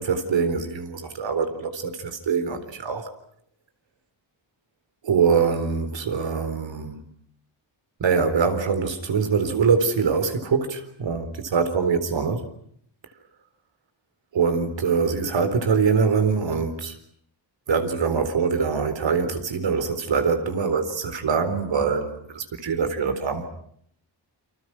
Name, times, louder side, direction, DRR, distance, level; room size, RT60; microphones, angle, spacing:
voice 1, 0.0-3.1 5.0-7.0 8.0-12.5 14.3-17.0 17.7-23.5, right 5 dB, 70° right, 4.1 m, -23 dB
29.5 x 26.0 x 6.2 m
cardioid pair, 95°, 46 cm